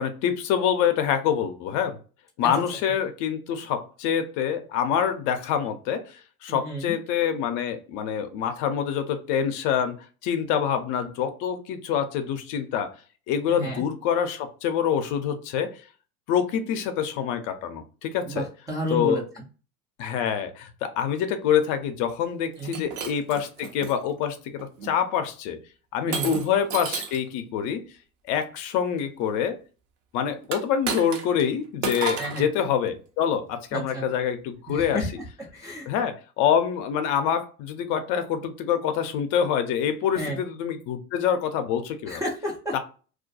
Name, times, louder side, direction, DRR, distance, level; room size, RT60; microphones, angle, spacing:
voice 1, 0.0-2.0 2.4-10.0 10.2-12.9 13.3-15.8 16.3-18.4 18.9-19.2 20.0-25.6 25.9-27.8 28.3-29.6 30.1-35.0 35.9-42.2 42.7-42.8, left 8 dB, 45° left, 8 dB, 0.5 m, -26 dB
voice 2, 6.5-7.0 13.5-13.8 18.2-19.4 22.6-22.8 26.1-26.3 32.2-32.5 33.7-34.1 34.7-35.9 40.2-40.4 42.1-42.7, equal, 10° right, -4 dB, 0.3 m, -31 dB
Shatter, 22.6-24.0 24.6-24.9 26.1-27.3 30.4-31.5 31.8-32.5, right 5 dB, 50° right, 0.7 m, -32 dB
2.4 x 2.1 x 2.6 m, 0.36 s
hypercardioid pair, 85°, 45 cm